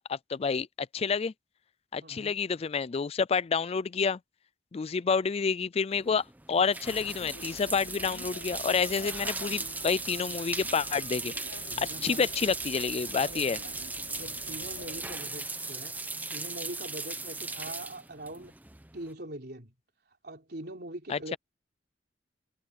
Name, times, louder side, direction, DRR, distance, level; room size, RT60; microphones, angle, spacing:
voice 1, 0.0-1.3 1.9-4.2 4.7-11.3 11.8-13.6 21.1-21.4, left 5 dB, 35° left, 0.4 m, -29 dB
voice 2, 2.0-2.4 11.6-12.3 13.2-13.8 14.2-16.0 16.3-18.6 18.9-19.7 20.2-21.4, right 1 dB, 60° right, 4.0 m, -43 dB
sound 1, 5.9-19.1, right 3 dB, 10° right, 0.8 m, -38 dB
sound 2, 6.8-15.2, left 2 dB, 85° left, 5.6 m, -48 dB
head